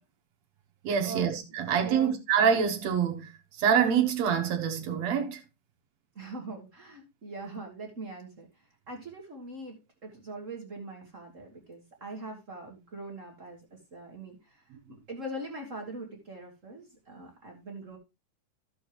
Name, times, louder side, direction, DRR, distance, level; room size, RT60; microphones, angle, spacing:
voice 1, 0.8-3.3 3.6-5.4, right 7 dB, 60° right, 2.2 m, -26 dB
voice 2, 1.8-2.1 6.2-18.0, right 2 dB, 40° right, 1.2 m, -42 dB
14.0 x 6.4 x 3.0 m
omnidirectional pair, 3.7 m